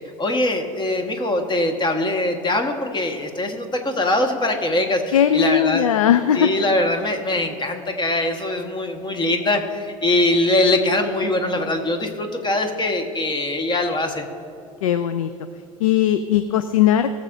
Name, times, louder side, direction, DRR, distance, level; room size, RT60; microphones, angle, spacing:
voice 1, 0.2-5.9 6.4-14.2, left 1 dB, 25° left, 4 dB, 1.6 m, -22 dB
voice 2, 5.1-6.5 14.8-15.3 15.8-17.1, left 10 dB, 85° left, 11 dB, 0.4 m, -18 dB
19.0 x 7.4 x 2.7 m, 2.6 s
hypercardioid pair, 75°, 17 cm